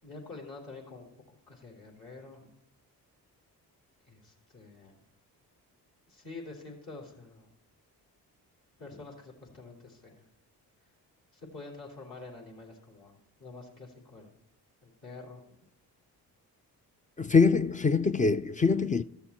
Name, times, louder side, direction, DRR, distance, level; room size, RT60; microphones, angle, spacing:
voice 1, 0.0-2.5 4.1-4.9 6.1-7.5 8.8-10.3 11.3-14.4 14.8-15.4 17.2-17.4, left 3 dB, 60° left, 3.6 m, -47 dB
voice 2, 17.2-19.0, left 4 dB, 20° left, 0.3 m, -24 dB
13.5 x 7.0 x 4.3 m
cardioid pair, 70°, 40 cm